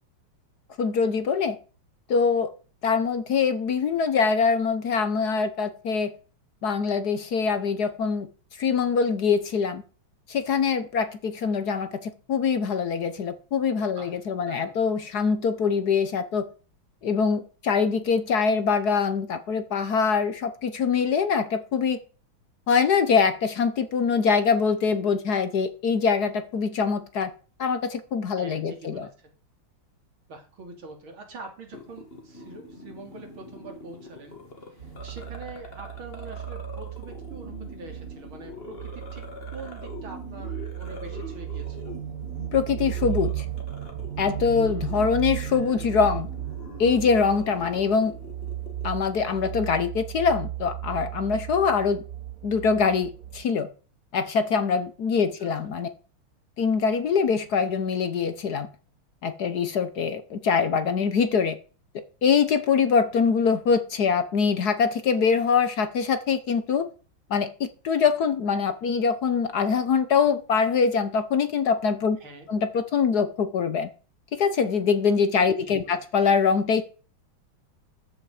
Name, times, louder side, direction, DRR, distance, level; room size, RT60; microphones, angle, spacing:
voice 1, 0.8-1.6 2.1-2.5 2.8-6.1 6.6-8.3 8.6-9.8 10.3-16.5 17.0-22.0 22.7-27.3 27.6-29.1 42.5-43.4 44.2-46.3 46.8-48.1 48.8-52.0 52.4-53.7 54.1-55.9 56.6-58.7 59.2-61.6 62.2-66.9 67.3-72.2 72.5-73.9 74.3-76.8, left 5 dB, 55° left, 11 dB, 1.3 m, -23 dB
voice 2, 14.0-14.8 28.4-29.3 30.3-34.3 34.7-39.2 39.5-41.9 55.4-55.7 72.2-72.5 75.6-76.0, right 3 dB, 75° right, 4 dB, 3.4 m, -44 dB
sound 1, 31.7-48.9, left 2 dB, 30° left, 2.2 m, -44 dB
sound 2, 34.8-53.4, right 12 dB, 50° right, 1.3 m, -35 dB
13.5 x 8.4 x 4.9 m, 0.37 s
omnidirectional pair, 2.3 m